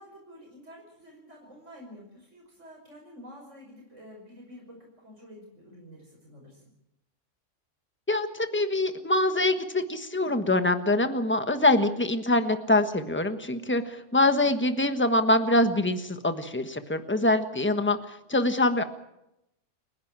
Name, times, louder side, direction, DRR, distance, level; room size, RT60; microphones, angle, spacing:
voice 1, 0.0-6.6, equal, 75° right, -1 dB, 5.7 m, -49 dB
voice 2, 8.1-18.0 18.3-18.8, left 2 dB, 10° left, 8 dB, 1.3 m, -24 dB
29.5 x 11.0 x 8.9 m, 0.87 s
omnidirectional pair, 1.3 m